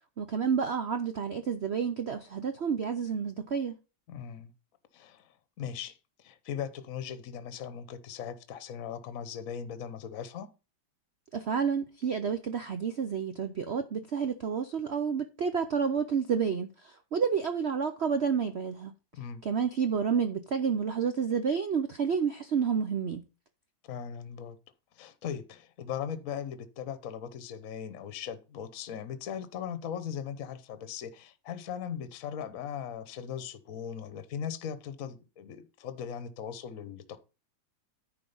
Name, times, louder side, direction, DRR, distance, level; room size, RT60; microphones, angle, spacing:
voice 1, 0.2-3.8 11.3-18.9 19.4-23.2, right 6 dB, 85° right, 0.5 m, -30 dB
voice 2, 4.1-4.5 4.9-5.3 5.6-10.5 19.1-19.5 23.8-24.6 25.0-37.2, left 8 dB, 55° left, 1.1 m, -39 dB
9.9 x 4.5 x 5.5 m
omnidirectional pair, 2.1 m